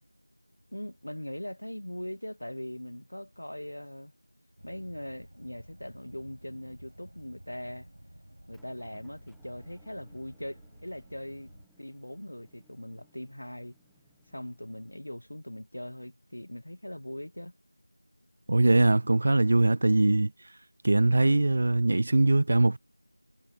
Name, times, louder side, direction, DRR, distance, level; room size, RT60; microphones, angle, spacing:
voice 1, 0.7-4.1 4.6-7.9 8.5-11.5 11.8-13.8 14.3-17.5, left 1 dB, 75° left, 1.1 m, -40 dB
sound 1, 4.6-11.7, right 1 dB, 80° right, 6.9 m, -52 dB
Motor vehicle (road) / Engine, 8.5-15.0, right 1 dB, ahead, 1.0 m, -67 dB
voice 2, 18.5-20.3 20.8-22.8, right 2 dB, 30° right, 0.3 m, -22 dB
figure-of-eight pair, 175°, 0 cm